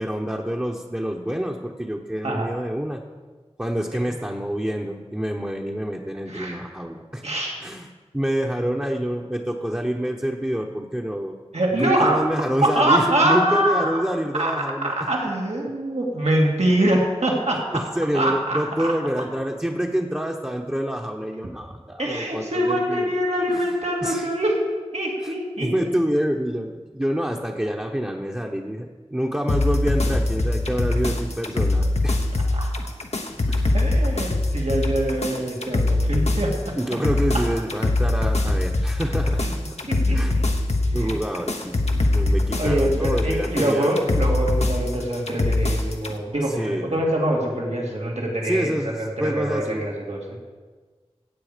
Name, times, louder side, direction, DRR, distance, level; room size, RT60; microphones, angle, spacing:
voice 1, 0.0-3.0 3.6-7.2 7.6-7.9 8.1-11.3 11.8-14.9 17.7-23.1 23.5-23.7 24.0-24.3 25.2-25.3 25.6-32.2 33.5-33.7 36.8-39.4 40.1-40.4 40.9-43.9 46.5-46.9 48.4-49.9, equal, 15° right, 0 dB, 1.0 m, -27 dB
voice 2, 6.3-6.6 7.2-7.6 11.5-12.3 12.6-14.0 14.3-14.5 14.8-17.8 18.1-18.9 22.0-24.6 24.9-26.0 32.5-32.7 33.7-36.7 37.3-37.5 39.4-39.5 39.9-40.4 40.9-41.2 42.5-50.4, right 1 dB, 80° right, -2 dB, 2.4 m, -24 dB
sound 1, 29.5-46.1, left 2 dB, 85° left, 1.1 m, -23 dB
15.5 x 8.4 x 5.1 m, 1.4 s
wide cardioid pair, 40°, 11 cm